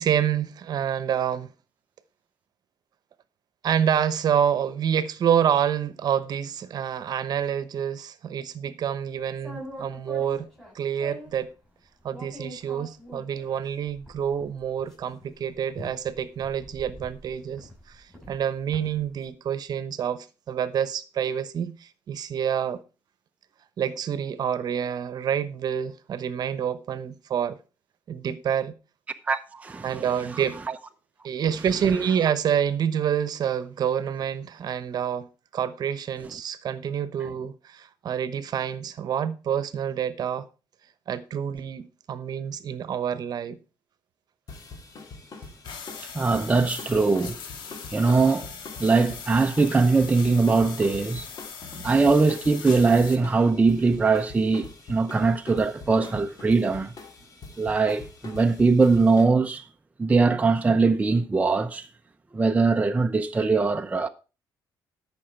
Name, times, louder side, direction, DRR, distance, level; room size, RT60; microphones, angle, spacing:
voice 1, 0.0-1.5 3.6-10.5 10.7-11.5 12.0-22.8 23.8-27.6 28.1-28.7 29.8-30.6 31.2-35.3 35.5-40.4 41.1-43.6, right 8 dB, 50° right, 1.1 m, -27 dB
sound 1, 9.3-11.4 12.1-19.1, equal, 5° left, 7.3 m, -44 dB
voice 2, 29.2-30.0 30.3-30.4 30.7-30.8 46.1-47.4 47.9-48.5 48.8-51.3 51.7-56.9 57.6-59.6 60.0-61.9 62.3-64.1, right 4 dB, 15° right, 0.7 m, -21 dB
sound 2, 44.5-59.2, left 3 dB, 45° left, 2.7 m, -44 dB
sound 3, 45.6-53.2, left 6 dB, 65° left, 2.0 m, -40 dB
13.0 x 6.1 x 4.6 m
cardioid pair, 110°, 9 cm